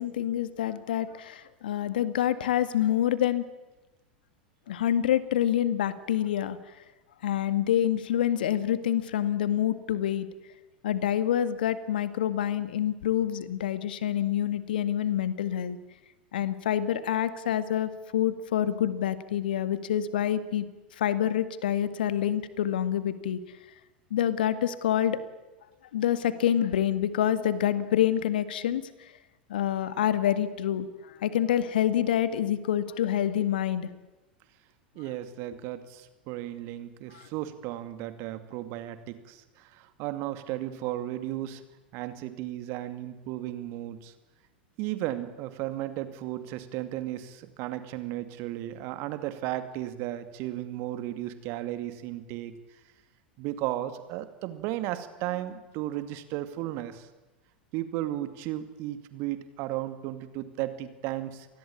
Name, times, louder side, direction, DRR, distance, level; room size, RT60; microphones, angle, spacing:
voice 1, 0.0-3.4 4.7-6.8 7.2-10.3 10.8-15.8 16.3-20.7 21.0-23.4 24.1-25.2 25.9-29.1 29.5-33.9 37.1-37.3, left 10 dB, 65° left, 13 dB, 1.9 m, -27 dB
voice 2, 34.9-41.6 41.9-44.1 44.8-52.6 53.4-57.1 57.7-61.5, right 14 dB, 50° right, 11 dB, 2.4 m, -35 dB
27.0 x 20.0 x 8.7 m, 1.1 s
figure-of-eight pair, 85°, 5 cm